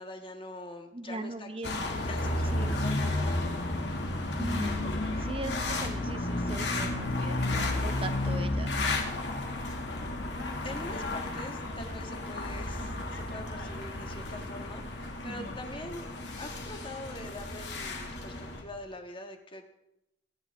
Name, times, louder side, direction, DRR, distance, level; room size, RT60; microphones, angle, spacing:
voice 1, 0.0-3.7 10.6-16.1 16.4-19.7, left 2 dB, 30° left, 4 dB, 1.6 m, -44 dB
voice 2, 0.9-2.1 2.5-2.8 4.4-4.9 5.2-8.9 15.2-15.6, right 2 dB, 30° right, 9 dB, 1.0 m, -40 dB
sound 1, 1.6-18.6, left 2 dB, 75° left, 2.3 m, -32 dB
22.0 x 11.0 x 3.7 m, 0.85 s
head